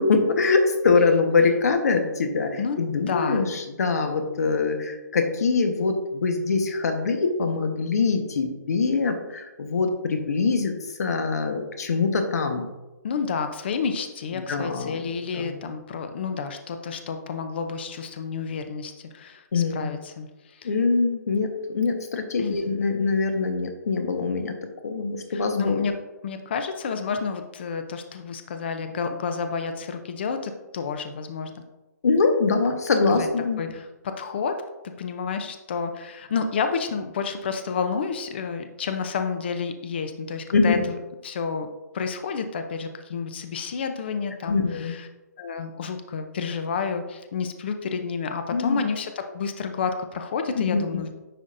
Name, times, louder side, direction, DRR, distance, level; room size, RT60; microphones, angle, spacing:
voice 1, 0.0-12.7 14.3-15.1 15.3-15.5 19.5-19.9 20.6-24.5 24.8-25.9 32.0-33.6 40.5-40.8 44.5-45.0 48.5-48.8 50.6-51.1, left 4 dB, 60° left, 5 dB, 1.1 m, -23 dB
voice 2, 2.6-3.6 13.0-20.7 22.4-22.6 25.3-26.0 26.2-31.6 33.1-33.3 33.6-34.6 35.0-41.0 41.2-41.7 41.9-45.1 45.4-51.1, left 5 dB, 35° left, 7 dB, 0.5 m, -30 dB
9.6 x 5.0 x 2.5 m, 1.1 s
hypercardioid pair, 170°, 10 cm